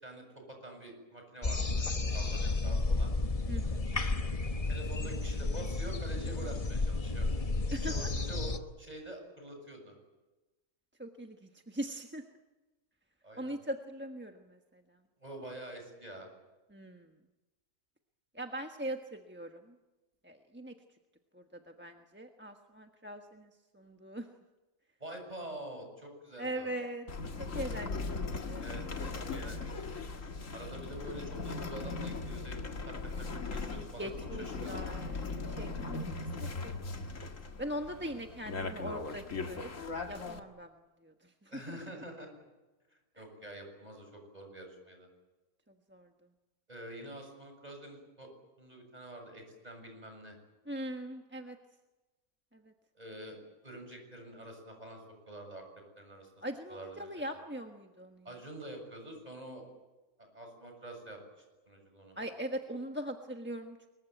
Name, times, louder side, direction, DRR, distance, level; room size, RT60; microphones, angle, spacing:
voice 1, 0.0-3.1 4.7-7.4 7.8-9.9 13.2-13.6 15.2-16.3 25.0-26.8 28.6-30.0 30.5-32.6 32.9-34.1 34.4-35.0 37.9-38.0 41.5-42.3 43.2-45.1 46.7-48.3 48.6-50.4 52.9-53.4 53.6-55.6 56.0-57.2 58.2-59.6 60.2-61.2 61.7-62.2, right 1 dB, 25° right, 4 dB, 7.4 m, -46 dB
sound 1, 1.4-8.6, left 3 dB, 25° left, 1.1 m, -32 dB
voice 2, 3.5-4.0 7.7-8.1 11.0-12.2 13.3-14.8 16.7-17.1 18.3-19.8 20.2-20.7 21.3-23.5 23.7-24.3 26.4-27.1 27.4-28.6 34.0-35.2 35.5-37.1 37.6-39.7 40.1-40.7 41.0-42.0 43.2-43.3 45.7-46.1 50.7-51.6 52.5-52.7 56.4-58.2 62.2-63.8, right 1 dB, 10° right, 4 dB, 1.2 m, -41 dB
sound 2, 27.1-40.4, left 3 dB, 60° left, 2.1 m, -39 dB
25.0 x 22.5 x 9.2 m, 1.1 s
omnidirectional pair, 1.5 m